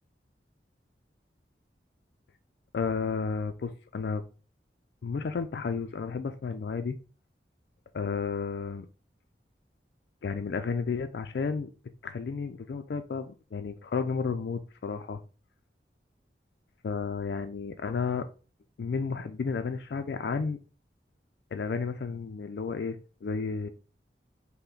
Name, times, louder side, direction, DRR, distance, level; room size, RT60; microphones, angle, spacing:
voice 1, 2.7-4.2 5.0-7.0 7.9-8.9 10.2-11.7 12.0-15.2 16.8-18.3 18.8-20.6 21.5-23.7, left 5 dB, 70° left, 8 dB, 0.4 m, -32 dB
5.5 x 2.1 x 3.8 m, 0.35 s
head